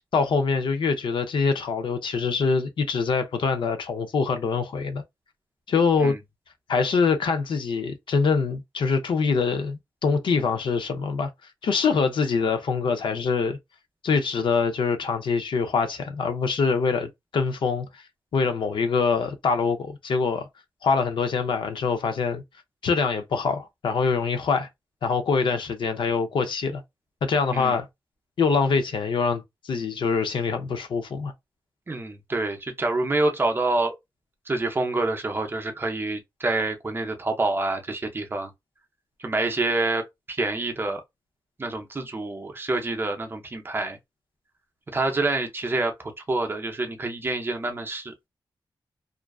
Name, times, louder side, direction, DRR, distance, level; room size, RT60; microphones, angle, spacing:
voice 1, 0.1-5.0 5.7-6.2 6.7-11.3 11.6-13.6 14.0-17.9 18.3-20.5 20.8-22.4 22.8-24.7 25.0-26.8 27.2-27.9 28.4-31.3, left 5 dB, 80° left, 0.5 m, -24 dB
voice 2, 31.9-33.9 34.5-38.5 39.2-41.0 41.6-44.0 44.9-45.9 46.3-48.1, right 2 dB, 25° right, 0.5 m, -27 dB
2.5 x 2.2 x 2.3 m
wide cardioid pair, 145°, 8 cm